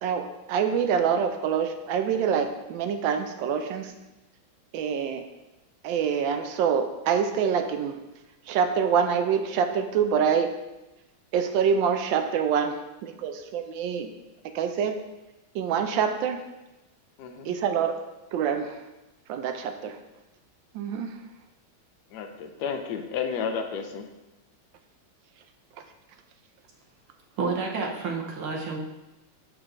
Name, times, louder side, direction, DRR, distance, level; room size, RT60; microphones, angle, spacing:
voice 1, 0.0-3.9 4.7-5.2 5.8-8.0 8.5-10.5 11.3-12.7 13.0-14.1 14.5-15.0 15.5-16.4 17.4-17.9 18.3-18.8 19.3-20.0 20.7-21.1, right 7 dB, 75° right, 6 dB, 1.2 m, -25 dB
voice 2, 17.2-17.5 22.1-24.1, left 6 dB, 80° left, 5 dB, 0.9 m, -32 dB
voice 3, 27.3-28.8, right 4 dB, 90° right, 0 dB, 1.8 m, -29 dB
6.2 x 6.0 x 2.5 m, 1.0 s
omnidirectional pair, 2.3 m